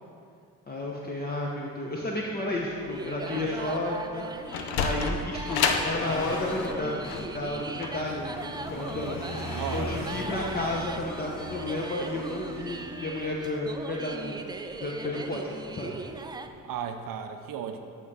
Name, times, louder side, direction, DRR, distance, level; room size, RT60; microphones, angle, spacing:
voice 1, 0.7-7.0 7.3-9.2 9.7-14.4 14.8-15.9, left 2 dB, 25° left, -2 dB, 0.9 m, -32 dB
Motorcycle, 2.5-16.8, left 1 dB, 65° left, 1.5 m, -43 dB
sound 1, 2.9-16.5, right 3 dB, 10° right, 0.3 m, -39 dB
voice 2, 3.3-3.7 9.5-10.0 10.3-10.6 16.6-17.8, right 8 dB, 65° right, 7 dB, 0.6 m, -36 dB
Sliding door, 4.2-9.4, left 5 dB, 80° left, 0.7 m, -31 dB
9.4 x 3.7 x 5.4 m, 2.4 s
supercardioid pair, 70°, 36 cm